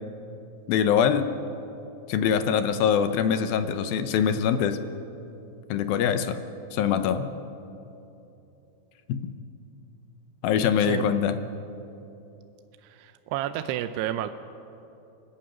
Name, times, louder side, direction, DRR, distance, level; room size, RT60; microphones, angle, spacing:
voice 1, 0.7-1.3 2.1-4.8 5.7-6.4 6.7-7.3 9.1-9.3 10.4-11.4, left 8 dB, 75° left, 10 dB, 2.3 m, -23 dB
voice 2, 12.8-14.3, right 12 dB, 85° right, 10 dB, 2.7 m, -30 dB
26.5 x 12.0 x 9.2 m, 2.9 s
omnidirectional pair, 4.8 m